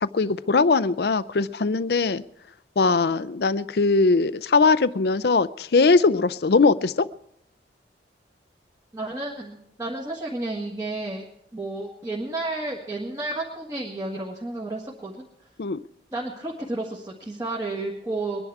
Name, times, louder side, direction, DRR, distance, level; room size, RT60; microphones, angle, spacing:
voice 1, 0.0-2.2 2.8-7.1 15.6-15.8, left 4 dB, 60° left, 16 dB, 0.5 m, -20 dB
voice 2, 8.9-11.2 11.5-15.1 16.1-18.4, right 2 dB, 20° right, -3 dB, 1.7 m, -31 dB
22.0 x 10.5 x 4.7 m, 0.76 s
head